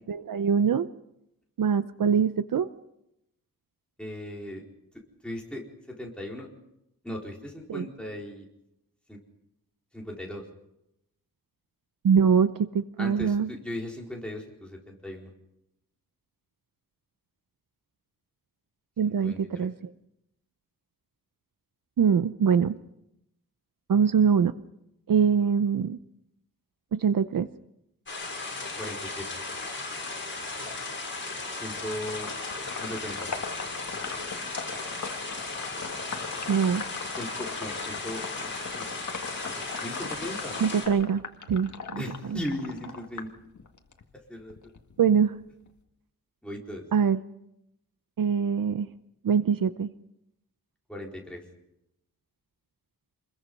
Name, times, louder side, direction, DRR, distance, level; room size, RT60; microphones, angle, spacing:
voice 1, 0.1-0.9 1.6-2.7 7.7-7.9 12.0-13.5 19.0-19.7 22.0-22.7 23.9-24.5 25.1-26.0 26.9-27.5 36.5-36.8 40.6-41.2 41.5-42.0 45.0-45.3 46.9-47.2 48.2-48.9 49.2-49.9, right 7 dB, 65° right, 12 dB, 0.7 m, -23 dB
voice 2, 4.0-4.6 4.9-6.5 7.0-8.5 9.1-9.2 9.9-10.4 13.0-15.3 19.1-19.7 28.8-29.3 31.5-32.3 32.8-33.3 37.2-38.9 39.4-39.5 39.8-40.6 42.0-43.3 44.3-44.5 46.4-46.9 50.9-51.4, left 1 dB, 5° left, -2 dB, 4.5 m, -38 dB
sound 1, 28.1-40.9, left 3 dB, 30° left, 6.9 m, -36 dB
Sink (filling or washing), 31.8-44.0 44.4-45.8, left 5 dB, 50° left, 1.9 m, -39 dB
27.5 x 21.5 x 5.5 m, 0.83 s
wide cardioid pair, 180°, 37 cm